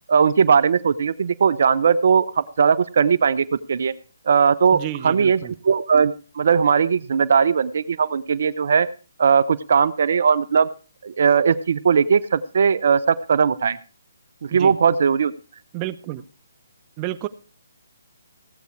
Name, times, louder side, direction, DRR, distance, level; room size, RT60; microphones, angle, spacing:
voice 1, 0.1-3.9 4.3-8.9 9.2-10.7 11.0-13.8 14.4-15.3, right 6 dB, 60° right, 16 dB, 0.7 m, -19 dB
voice 2, 4.7-5.5 14.5-14.7 15.7-16.2 17.0-17.3, right 15 dB, 25° right, 15 dB, 0.8 m, -30 dB
16.5 x 8.2 x 4.6 m, 0.36 s
figure-of-eight pair, 145°, 0 cm